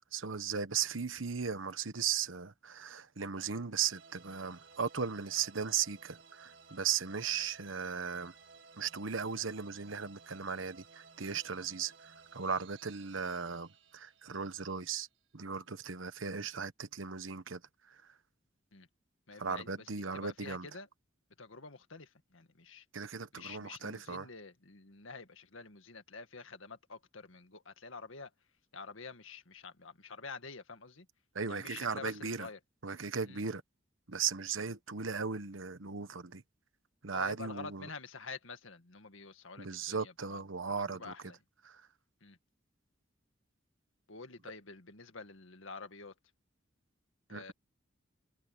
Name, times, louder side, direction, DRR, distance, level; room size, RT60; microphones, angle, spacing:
voice 1, 0.1-8.3 8.8-15.1 15.3-17.6 17.9-18.1 19.4-20.7 22.9-24.3 31.3-32.5 32.8-33.6 34.1-36.4 37.0-37.9 39.6-41.1 41.6-41.8 47.3-47.4, right 6 dB, 85° right, 1.1 m, -37 dB
sound 1, 3.9-15.3, right 5 dB, 70° right, 1.8 m, -58 dB
voice 2, 19.3-20.9 21.4-22.9 23.3-28.3 28.7-31.1 31.5-32.6 33.3-33.4 37.1-40.4 40.9-41.4 42.2-42.4 44.1-46.1 47.3-47.5, left 4 dB, 85° left, 1.9 m, -48 dB
head